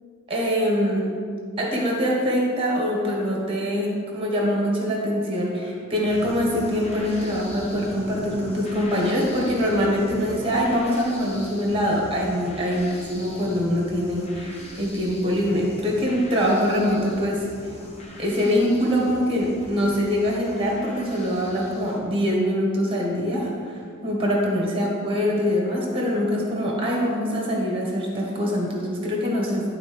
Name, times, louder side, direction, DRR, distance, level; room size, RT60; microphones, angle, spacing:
voice 1, 0.3-1.2 1.6-17.4 18.2-29.7, equal, 25° right, -2 dB, 1.3 m, -24 dB
sound 1, 6.1-22.0, equal, 30° left, 0.8 m, -40 dB
11.0 x 3.9 x 3.4 m, 2.2 s
head